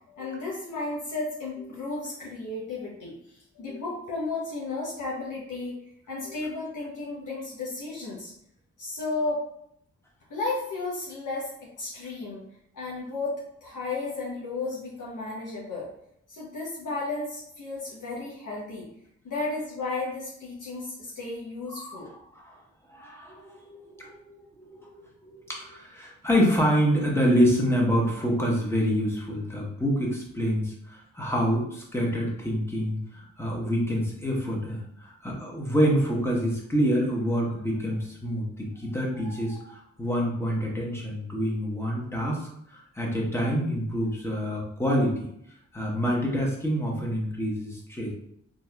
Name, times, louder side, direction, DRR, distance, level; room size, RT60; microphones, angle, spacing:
voice 1, 0.1-5.8 6.1-8.3 8.8-9.5 10.3-12.4 12.7-15.9 16.3-18.9 19.2-22.1, left 3 dB, 75° left, -6 dB, 1.1 m, -33 dB
voice 2, 21.7-22.6 22.9-45.3 45.7-48.1, equal, 10° left, -2 dB, 1.4 m, -27 dB
4.0 x 3.0 x 2.5 m, 0.72 s
cardioid pair, 45°, 32 cm